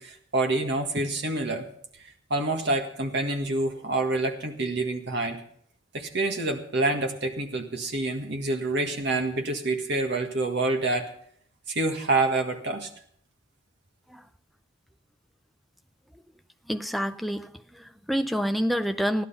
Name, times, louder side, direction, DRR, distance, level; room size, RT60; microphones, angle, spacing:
voice 1, 0.0-1.7 2.0-5.4 5.9-11.1 11.7-12.9, right 2 dB, 55° right, 4 dB, 1.7 m, -27 dB
voice 2, 16.7-19.2, equal, ahead, 9 dB, 0.4 m, -28 dB
15.0 x 11.5 x 5.6 m, 0.64 s
head